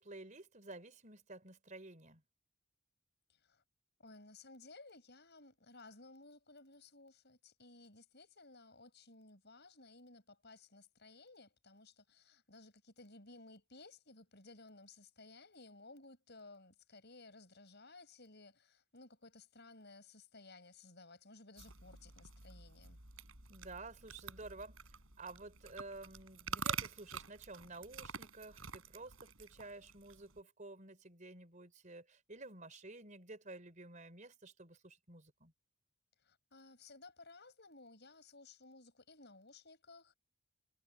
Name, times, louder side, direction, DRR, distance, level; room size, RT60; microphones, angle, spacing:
voice 1, 0.0-2.2 23.5-24.8 25.2-35.5, right 2 dB, 35° right, 4.3 m, -52 dB
voice 2, 3.3-3.6 4.0-23.0 36.2-40.1, left 3 dB, 50° left, 7.3 m, -58 dB
sound 1, 21.6-30.4, right 6 dB, 75° right, 5.9 m, -47 dB
head